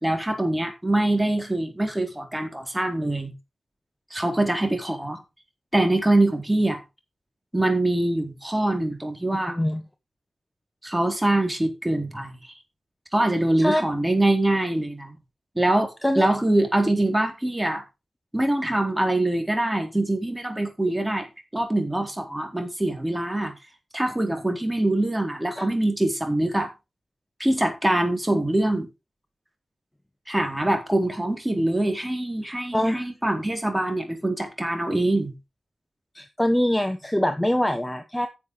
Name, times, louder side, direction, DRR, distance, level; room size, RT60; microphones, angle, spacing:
voice 1, 0.0-3.3 4.1-5.2 5.7-6.8 7.5-9.6 10.8-12.3 13.1-15.2 15.6-17.8 18.3-21.3 21.5-23.5 23.9-26.7 27.4-28.9 30.3-35.3, right 1 dB, 15° right, 4.2 m, -24 dB
voice 2, 9.5-9.8 13.6-13.8 16.0-16.3 25.6-25.7 32.7-33.1 36.1-38.3, left 1 dB, 10° left, 1.4 m, -23 dB
11.0 x 7.1 x 4.9 m
cardioid pair, 50°, 0 cm